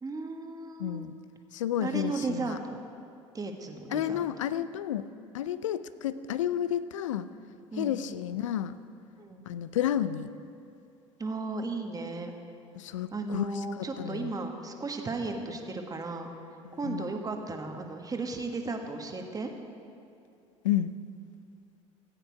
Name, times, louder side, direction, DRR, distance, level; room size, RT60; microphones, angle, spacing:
voice 1, 0.0-1.0 1.8-2.8 3.3-4.3 7.7-8.0 9.2-9.5 11.2-12.3 13.1-16.3 16.8-19.5, right 3 dB, 25° right, 4 dB, 1.4 m, -35 dB
voice 2, 0.8-1.2 1.5-2.6 3.9-5.1 5.3-7.3 7.7-8.8 9.5-10.3 12.7-13.5 13.8-14.3 16.6-17.1 20.6-20.9, left 11 dB, 85° left, 14 dB, 0.4 m, -31 dB
15.0 x 8.9 x 4.7 m, 2.6 s
hypercardioid pair, 70°, 16 cm